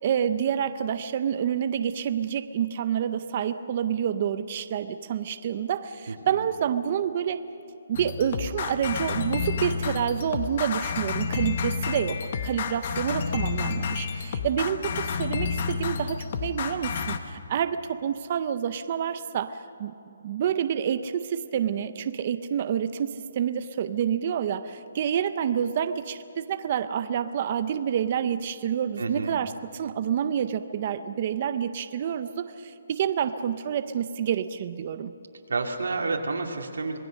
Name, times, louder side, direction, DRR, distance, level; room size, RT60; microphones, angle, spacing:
voice 1, 0.0-7.4 7.9-19.9 20.2-35.1, right 8 dB, 25° right, 11 dB, 0.5 m, -28 dB
sound 1, 7.9-17.2, left 6 dB, 30° left, 0.9 m, -30 dB
voice 2, 29.0-29.4 35.5-37.0, right 3 dB, 90° right, 2 dB, 2.4 m, -29 dB
26.0 x 20.0 x 6.4 m, 2.6 s
hypercardioid pair, 180°, 0 cm